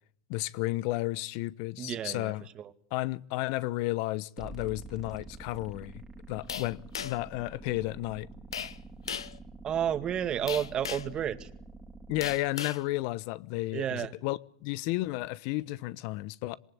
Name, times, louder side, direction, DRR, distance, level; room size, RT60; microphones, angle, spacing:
voice 1, 0.3-2.4 2.9-6.0 6.3-8.3 12.1-16.6, left 19 dB, 60° left, 0.9 m, -33 dB
voice 2, 1.8-2.7 9.6-11.5 13.7-14.1, right 9 dB, 35° right, 2.0 m, -31 dB
sound 1, 4.4-12.4, right 3 dB, 20° right, 2.9 m, -47 dB
sound 2, 6.5-7.3 8.5-8.8 9.1-9.4 10.5-11.2 12.2-12.8, left 8 dB, 90° left, 1.1 m, -37 dB
26.5 x 19.5 x 8.6 m
hypercardioid pair, 100°, 3 cm